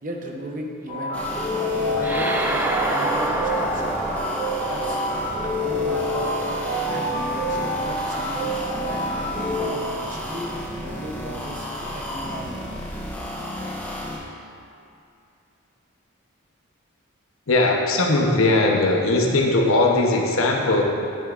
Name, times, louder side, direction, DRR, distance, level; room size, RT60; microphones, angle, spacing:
voice 1, 0.0-1.2 1.9-3.9 4.6-5.0 5.4-6.3 6.9-11.7 11.9-12.7, right 1 dB, 40° right, 1 dB, 0.7 m, -36 dB
sound 1, 0.9-9.7, equal, 35° left, 1.8 m, -27 dB
sound 2, 1.1-14.2, equal, 10° left, 1.1 m, -32 dB
sound 3, 2.0-6.7, right 1 dB, 10° right, 0.3 m, -29 dB
voice 2, 17.5-20.8, left 2 dB, 70° left, 1 dB, 0.8 m, -19 dB
10.0 x 7.2 x 2.5 m, 2.6 s
head